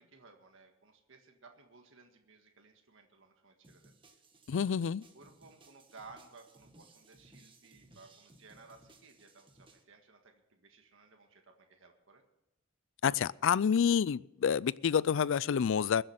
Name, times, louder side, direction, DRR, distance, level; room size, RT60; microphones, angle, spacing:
voice 1, 0.0-4.2 4.5-4.8 5.1-12.2, right 4 dB, 65° right, 1.7 m, -58 dB
sound 1, 3.6-9.8, right 2 dB, 25° right, 1.6 m, -62 dB
voice 2, 4.5-5.0 13.0-16.0, left 7 dB, 65° left, 0.4 m, -28 dB
21.5 x 7.8 x 5.8 m
head